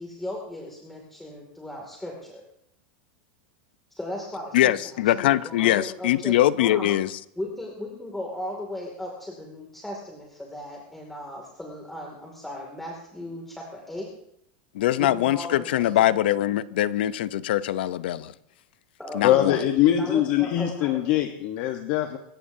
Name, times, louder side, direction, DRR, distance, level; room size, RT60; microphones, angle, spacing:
voice 1, 0.0-2.4 4.0-7.0 7.4-14.1 15.0-16.2 19.0-21.0, left 1 dB, 5° left, 2.4 m, -37 dB
voice 2, 4.5-7.1 14.7-18.3 19.1-19.6, left 13 dB, 80° left, 0.7 m, -22 dB
voice 3, 19.2-22.2, left 12 dB, 50° left, 1.1 m, -22 dB
26.0 x 15.0 x 2.7 m
supercardioid pair, 150°, 5 cm